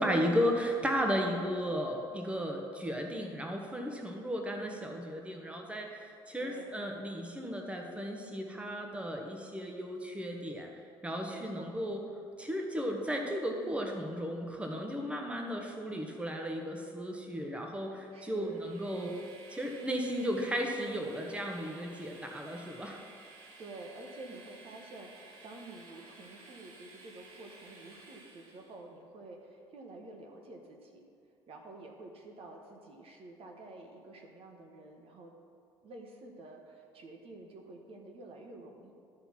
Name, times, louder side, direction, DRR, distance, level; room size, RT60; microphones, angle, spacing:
voice 1, 0.0-10.7 11.0-12.0 12.4-19.1 19.5-23.0, equal, 10° right, 2 dB, 1.2 m, -34 dB
voice 2, 6.4-6.7 11.2-11.7 18.1-18.6 23.6-31.0 31.5-35.3 35.8-38.9, right 2 dB, 45° right, 1 dB, 1.2 m, -49 dB
Train, 18.4-28.8, right 3 dB, 70° right, 1.4 m, -54 dB
12.0 x 4.3 x 5.8 m, 2.4 s
figure-of-eight pair, 55°, 13 cm